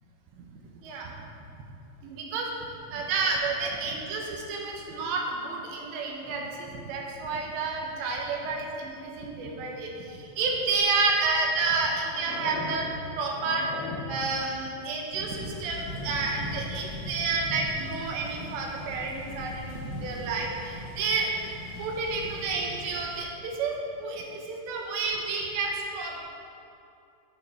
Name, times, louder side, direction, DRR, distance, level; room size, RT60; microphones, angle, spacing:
voice 1, 0.8-1.2 2.0-2.5 2.9-12.9 13.2-26.2, right 4 dB, 80° right, -1 dB, 3.4 m, -30 dB
sound 1, 10.8-10.9 11.7-14.4, left 2 dB, 75° left, 3.0 m, -39 dB
sound 2, 15.1-23.2, left 1 dB, 55° left, 3.4 m, -39 dB
11.0 x 8.6 x 5.0 m, 2.6 s
omnidirectional pair, 5.1 m